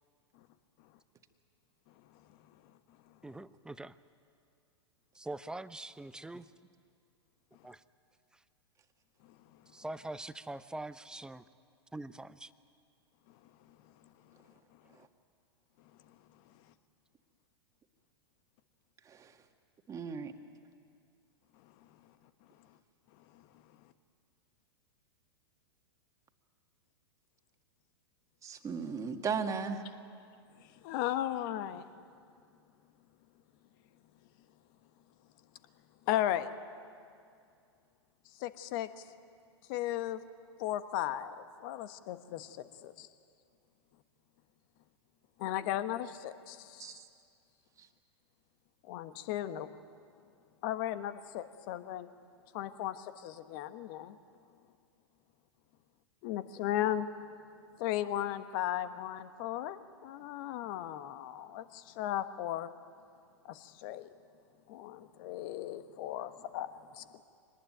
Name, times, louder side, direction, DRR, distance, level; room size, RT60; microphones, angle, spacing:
voice 1, 3.2-4.0 5.1-6.5 7.6-7.8 8.3-8.4 9.7-11.4 11.9-12.5, right 2 dB, 5° right, 14 dB, 0.6 m, -43 dB
voice 2, 19.0-19.4 19.9-20.3 28.4-29.9 46.8-47.1 47.8-47.9, right 5 dB, 20° right, 5 dB, 1.8 m, -37 dB
voice 3, 30.8-31.8 36.1-36.5 38.4-39.0 39.7-40.2 40.6-43.1 45.4-47.0 48.9-49.7 50.6-52.1 52.5-54.2 56.2-57.1 57.8-62.7 63.4-64.1 64.7-67.2, left 12 dB, 50° left, 11 dB, 1.3 m, -36 dB
25.0 x 19.5 x 9.2 m, 2.4 s
hypercardioid pair, 105°, 14 cm